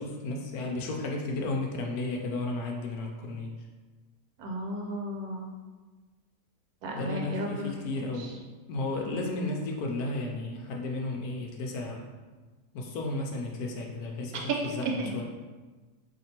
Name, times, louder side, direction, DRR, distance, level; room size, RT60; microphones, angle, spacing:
voice 1, 0.0-3.5 6.9-8.4 8.7-12.1 12.7-15.2, left 2 dB, 75° left, 1 dB, 1.0 m, -33 dB
voice 2, 4.4-5.5 6.8-7.8 8.2-8.3 14.8-14.9, equal, 75° right, 0 dB, 1.1 m, -34 dB
4.3 x 2.9 x 2.8 m, 1.3 s
omnidirectional pair, 1.7 m